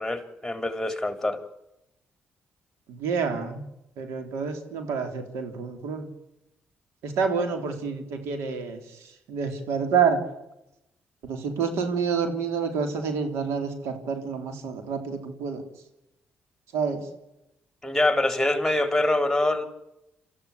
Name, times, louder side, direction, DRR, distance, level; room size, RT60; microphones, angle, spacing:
voice 1, 0.0-1.4 17.8-19.7, left 1 dB, 10° left, 3.7 m, -24 dB
voice 2, 2.9-3.6 4.0-6.1 7.0-8.8 9.3-10.2 11.2-15.6 16.7-17.0, right 6 dB, 85° right, 3.6 m, -28 dB
26.5 x 14.5 x 8.5 m
supercardioid pair, 55°, 5 cm